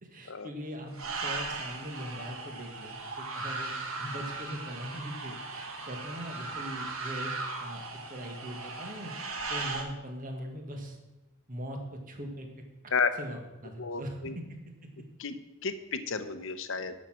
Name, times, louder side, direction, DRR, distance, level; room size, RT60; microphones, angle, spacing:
voice 1, 0.0-7.3 7.6-9.1 9.5-11.0 11.5-11.8 12.1-12.5 13.2-14.2, equal, 35° right, 3 dB, 1.7 m, -41 dB
sound 1, 0.9-9.8, right 3 dB, 65° right, 1.6 m, -37 dB
voice 2, 13.8-14.3 15.2-15.3 15.6-16.9, left 5 dB, 60° left, 10 dB, 0.8 m, -31 dB
11.5 x 6.5 x 6.3 m, 1.0 s
head